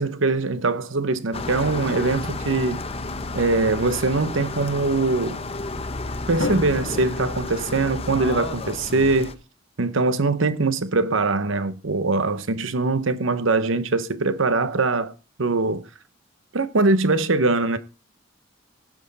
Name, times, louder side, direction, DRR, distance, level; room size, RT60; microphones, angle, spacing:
voice 1, 0.0-2.8 3.3-5.4 6.3-9.4 9.8-15.1 15.4-15.9 16.5-17.8, right 3 dB, 75° right, 0.9 m, -22 dB
sound 1, 1.3-9.3, left 2 dB, 30° left, 0.7 m, -31 dB
Drum, 6.4-8.5, left 3 dB, 80° left, 1.3 m, -33 dB
16.5 x 6.3 x 4.0 m
head